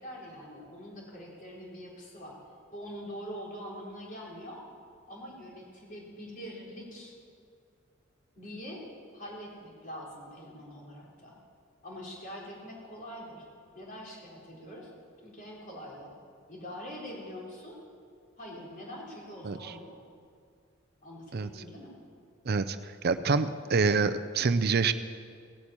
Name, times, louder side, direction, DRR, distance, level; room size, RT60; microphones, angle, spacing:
voice 1, 0.0-2.4 2.7-4.7 5.1-7.2 8.4-8.9 9.1-11.3 11.8-13.4 13.7-14.9 15.2-16.1 16.5-17.8 18.4-20.0 21.0-22.0, equal, 40° left, -3 dB, 4.0 m, -44 dB
voice 2, 22.5-22.8 23.0-24.9, right 4 dB, 50° right, 12 dB, 0.5 m, -26 dB
17.0 x 8.8 x 8.7 m, 2.2 s
head